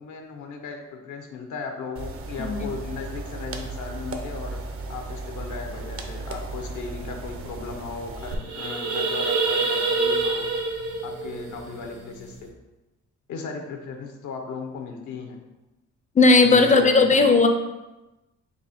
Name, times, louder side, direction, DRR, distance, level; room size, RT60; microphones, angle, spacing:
voice 1, 0.0-4.6 4.9-10.5 11.0-12.5 13.3-15.4 16.4-17.3, left 4 dB, 75° left, 4 dB, 0.7 m, -36 dB
sound 1, 2.0-8.3, right 2 dB, 50° right, 0.6 m, -35 dB
sound 2, 8.1-12.4, right 3 dB, 80° right, 0.8 m, -27 dB
voice 2, 16.1-17.5, left 3 dB, 25° left, 6 dB, 0.4 m, -16 dB
4.1 x 2.7 x 4.1 m, 1.0 s
cardioid pair, 90°, 30 cm